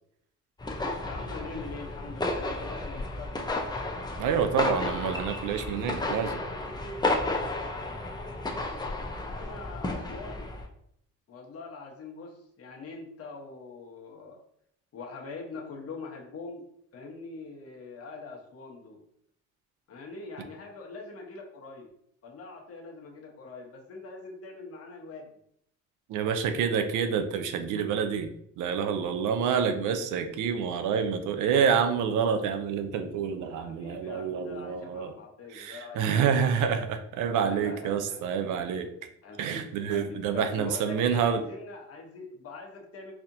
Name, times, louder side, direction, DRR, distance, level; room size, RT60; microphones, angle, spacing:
sound 1, 0.6-10.6, left 2 dB, 15° left, 0.5 m, -32 dB
voice 1, 1.0-3.4 9.3-10.5 11.3-14.4 14.9-16.6 16.9-19.0 19.9-21.9 22.2-25.3 33.5-36.4 37.4-38.2 39.2-43.1, left 4 dB, 50° left, 0 dB, 1.0 m, -43 dB
voice 2, 4.2-6.4 26.1-28.3 28.6-35.1 35.5-38.9 39.4-41.4, right 7 dB, 85° right, 7 dB, 0.5 m, -27 dB
4.1 x 2.8 x 2.6 m, 0.70 s
cardioid pair, 90°, 30 cm